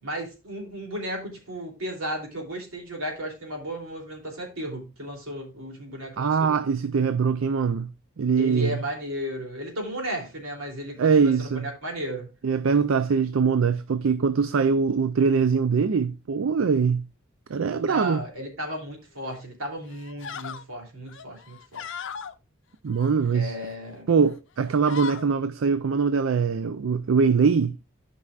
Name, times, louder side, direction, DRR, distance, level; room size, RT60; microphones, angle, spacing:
voice 1, 0.0-6.5 8.4-12.3 17.8-21.9 23.3-24.1, equal, 90° right, 3.0 m, -34 dB
voice 2, 6.2-7.9 8.2-8.8 11.0-11.7 12.4-17.0 17.5-18.2 22.8-23.6 24.1-27.8, right 5 dB, 70° right, 0.4 m, -22 dB
sound 1, 19.2-19.5 19.9-20.6 21.1-22.3 22.9-23.8 24.2-24.4 24.6-25.3, left 7 dB, 65° left, 0.5 m, -38 dB
13.0 x 5.5 x 2.4 m
head